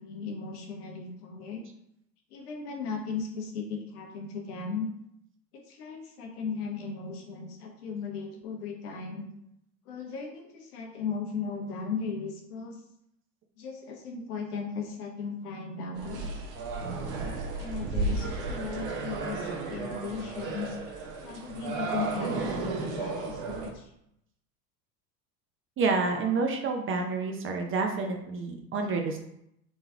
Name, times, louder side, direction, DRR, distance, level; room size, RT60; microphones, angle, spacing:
voice 1, 0.0-1.7 2.3-4.9 5.5-9.3 9.8-12.8 13.6-16.4 17.2-20.8 21.2-23.9, left 5 dB, 70° left, 1 dB, 1.2 m, -37 dB
sound 1, 16.0-23.7, right 3 dB, 50° right, 1.0 m, -33 dB
voice 2, 25.8-29.2, right 4 dB, 25° right, 3 dB, 0.6 m, -28 dB
3.8 x 3.2 x 3.6 m, 0.77 s
hypercardioid pair, 80°, 48 cm